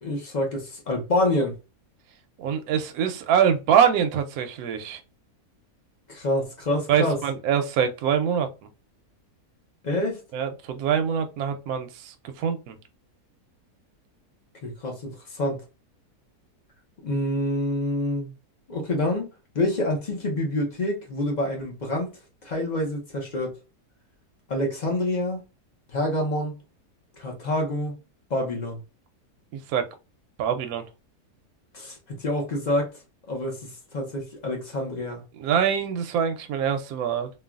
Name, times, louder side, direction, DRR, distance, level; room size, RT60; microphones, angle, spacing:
voice 1, 0.0-1.6 6.1-7.2 9.8-10.2 14.6-15.6 17.0-18.3 18.7-19.3 19.5-22.1 22.4-23.6 24.5-25.4 25.9-26.6 27.2-28.0 28.3-28.8 31.7-32.9 33.3-35.2, left 1 dB, 50° left, 0.5 m, -27 dB
voice 2, 2.4-5.0 6.9-8.5 10.3-12.8 29.5-29.8 30.4-30.8 35.4-37.3, right 8 dB, 70° right, 1.0 m, -24 dB
3.1 x 2.3 x 2.3 m
omnidirectional pair, 1.7 m